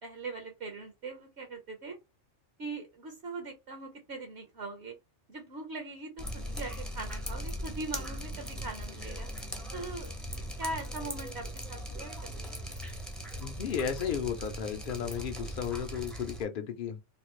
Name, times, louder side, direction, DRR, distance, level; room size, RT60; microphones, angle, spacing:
voice 1, 0.0-2.0 2.6-4.9 5.3-9.3 9.7-12.5, right 3 dB, 60° right, 1.1 m, -41 dB
Drip, 6.2-16.4, equal, ahead, 0.6 m, -39 dB
voice 2, 13.4-17.0, left 8 dB, 55° left, 0.6 m, -34 dB
3.2 x 2.4 x 3.1 m
omnidirectional pair, 1.3 m